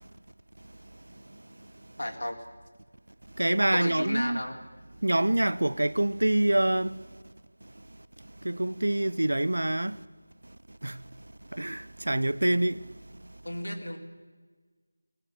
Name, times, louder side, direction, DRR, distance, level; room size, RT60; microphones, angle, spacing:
voice 1, 2.0-2.4 3.7-4.6 13.4-14.0, left 1 dB, 80° left, 4.0 m, -33 dB
voice 2, 3.4-4.4 5.0-7.0 8.4-10.0 10.8-11.0 11.5-12.8, right 1 dB, 80° right, 0.9 m, -26 dB
20.0 x 18.0 x 9.1 m
figure-of-eight pair, 170°, 0 cm